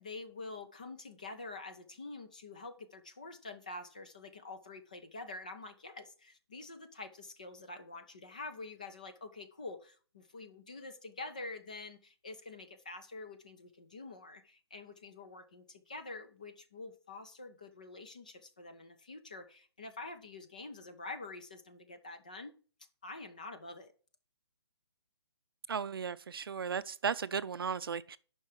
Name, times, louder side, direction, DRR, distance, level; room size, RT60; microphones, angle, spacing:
voice 1, 0.0-22.5 23.0-23.9, left 3 dB, 15° left, 0.4 m, -47 dB
voice 2, 25.7-28.2, right 6 dB, 55° right, 0.5 m, -35 dB
9.5 x 5.6 x 4.8 m
hypercardioid pair, 175°, 14 cm